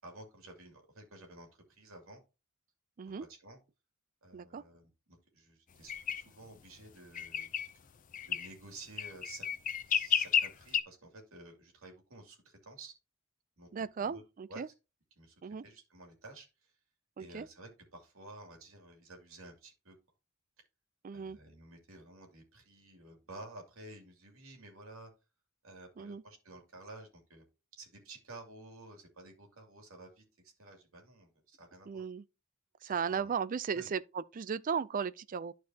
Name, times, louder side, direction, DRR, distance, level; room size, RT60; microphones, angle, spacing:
voice 1, 0.0-1.5 1.8-2.2 3.0-3.6 4.2-7.5 8.2-9.5 9.8-12.9 13.6-13.7 14.0-14.2 14.5-14.6 15.2-16.7 17.2-20.0 21.1-25.1 25.6-27.4 27.8-32.0 32.8-33.3 33.7-33.9, right 2 dB, 80° right, 2.6 m, -52 dB
voice 2, 4.3-4.6 13.7-14.7 15.4-15.6 17.2-17.5 21.0-21.4 26.0-26.2 31.9-32.2 32.8-35.5, right 6 dB, 40° right, 0.4 m, -36 dB
sound 1, 5.9-6.2 7.1-7.7 8.1-8.5 9.0-10.8, left 9 dB, 40° left, 0.5 m, -31 dB
11.5 x 4.6 x 2.8 m
head